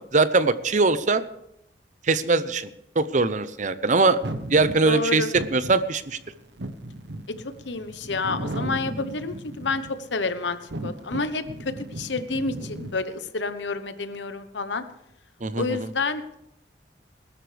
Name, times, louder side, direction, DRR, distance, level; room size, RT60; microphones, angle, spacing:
voice 1, 0.1-1.2 2.0-2.7 3.0-4.2 4.5-5.2 5.5-6.2 15.4-15.6, right 3 dB, 45° right, 13 dB, 0.7 m, -21 dB
sound 1, 4.2-10.1 10.5-13.0, right 1 dB, 70° right, 1.0 m, -35 dB
voice 2, 4.8-5.3 7.3-7.4 7.6-14.8 15.6-16.4, left 3 dB, 75° left, 11 dB, 1.0 m, -29 dB
21.0 x 12.5 x 3.4 m, 0.79 s
head